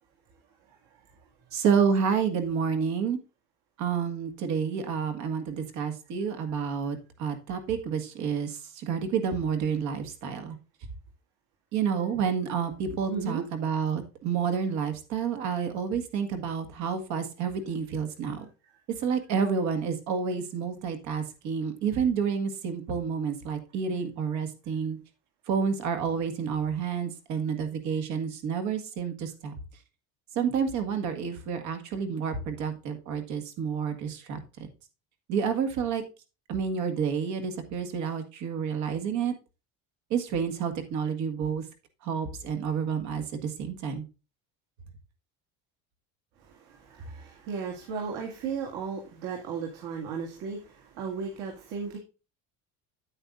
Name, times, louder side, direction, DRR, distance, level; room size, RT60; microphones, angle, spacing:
voice 1, 1.5-3.2 3.8-10.6 11.7-18.5 19.0-25.0 25.5-29.5 30.4-34.7 35.3-36.0 36.5-39.3 40.1-41.6 42.0-44.0, right 6 dB, 55° right, 7 dB, 1.8 m, -29 dB
voice 2, 13.1-13.4 18.6-18.7 46.4-52.0, right 5 dB, 80° right, 0 dB, 2.3 m, -35 dB
9.0 x 8.9 x 2.5 m, 0.30 s
cardioid pair, 175°, 35 cm